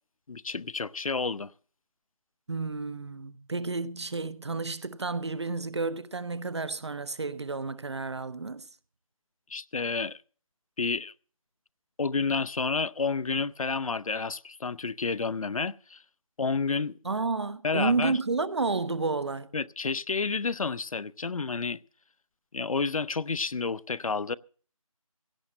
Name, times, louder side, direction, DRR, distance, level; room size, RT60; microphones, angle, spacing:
voice 1, 0.3-1.5 9.5-10.2 10.8-11.1 12.0-16.0 16.4-17.0 17.6-18.2 19.5-21.8 22.5-24.4, left 4 dB, 70° left, 0.6 m, -30 dB
voice 2, 2.5-8.7 17.0-19.5, right 3 dB, 50° right, 0.7 m, -31 dB
16.5 x 6.3 x 7.6 m
figure-of-eight pair, 165°, 18 cm